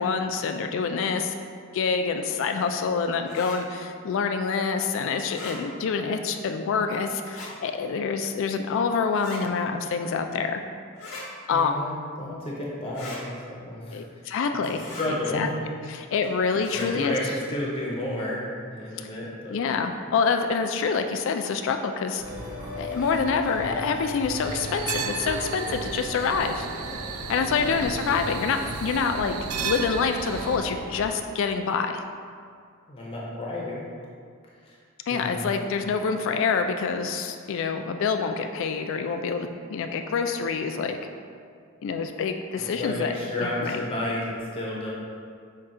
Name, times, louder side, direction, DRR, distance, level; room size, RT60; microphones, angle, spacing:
voice 1, 0.0-1.3 1.7-10.6 11.5-11.7 13.9-14.9 15.3-15.5 15.9-17.2 19.0-19.1 19.5-22.2 22.8-26.7 27.3-32.0 35.1-41.0 41.8-43.1 43.4-43.8, left 5 dB, 60° left, 7 dB, 0.3 m, -26 dB
sound 1, 3.3-3.6 5.2-5.6 7.2-7.5 9.1-9.4 11.0-11.2 12.9-13.2 14.8-15.1 16.6-16.9, left 2 dB, 80° left, 1.0 m, -40 dB
voice 2, 11.5-14.0 14.7-15.6 16.7-19.6 27.5-27.9 32.9-33.9 34.6-34.8 35.1-35.8 42.6-44.9, left 1 dB, 25° left, -5 dB, 0.6 m, -32 dB
sound 2, 22.2-31.1, equal, 35° right, 0.7 m, -37 dB
sound 3, 24.4-30.6, right 6 dB, 80° right, 0.3 m, -34 dB
5.5 x 2.3 x 3.7 m, 2.2 s
head